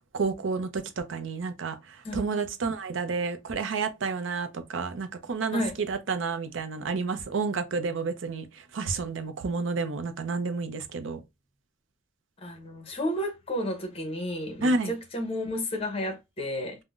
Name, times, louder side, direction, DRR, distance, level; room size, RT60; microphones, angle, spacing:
voice 1, 0.1-1.8 2.1-5.6 5.9-8.4 8.7-11.2 14.6-14.9, right 4 dB, 75° right, 0.5 m, -30 dB
voice 2, 12.4-16.8, left 1 dB, 30° left, 0.7 m, -32 dB
3.7 x 2.1 x 2.3 m
head